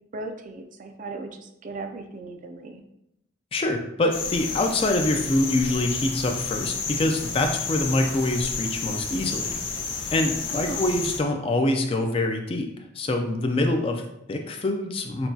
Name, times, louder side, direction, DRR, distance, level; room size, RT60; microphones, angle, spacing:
voice 1, 0.1-2.8 10.5-10.9, right 2 dB, 40° right, 5 dB, 0.4 m, -37 dB
voice 2, 3.5-9.6 10.1-12.7 13.0-15.3, left 2 dB, 30° left, 4 dB, 0.4 m, -25 dB
sound 1, 4.1-11.2, left 5 dB, 80° left, 0.6 m, -31 dB
5.9 x 2.2 x 2.7 m, 0.81 s
head